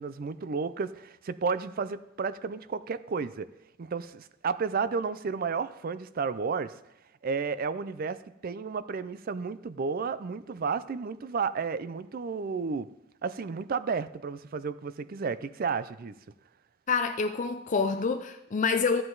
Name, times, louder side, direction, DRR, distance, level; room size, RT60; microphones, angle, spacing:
voice 1, 0.0-3.5 3.8-6.7 7.2-12.9 13.2-16.1, right 5 dB, 45° right, 15 dB, 0.4 m, -32 dB
voice 2, 16.9-19.0, left 5 dB, 40° left, 8 dB, 0.4 m, -27 dB
13.0 x 7.8 x 3.9 m, 0.86 s
head